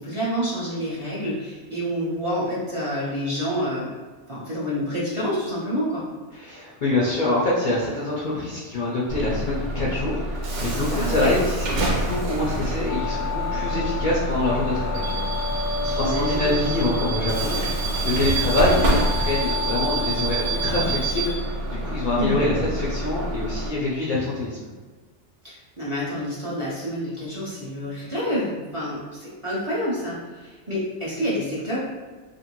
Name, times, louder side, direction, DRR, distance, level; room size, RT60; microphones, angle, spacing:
voice 1, 0.0-3.9 4.3-6.0 10.9-11.4 15.8-16.6 22.2-22.5 25.4-31.8, equal, 35° right, -8 dB, 0.5 m, -28 dB
voice 2, 6.3-15.7 15.9-24.6, left 2 dB, 55° left, -6 dB, 0.5 m, -25 dB
Bus / Alarm, 9.1-23.7, right 2 dB, 80° right, 1.0 m, -26 dB
sound 1, 12.9-21.0, left 5 dB, 85° left, 0.9 m, -32 dB
2.5 x 2.5 x 3.0 m, 1.4 s
omnidirectional pair, 1.2 m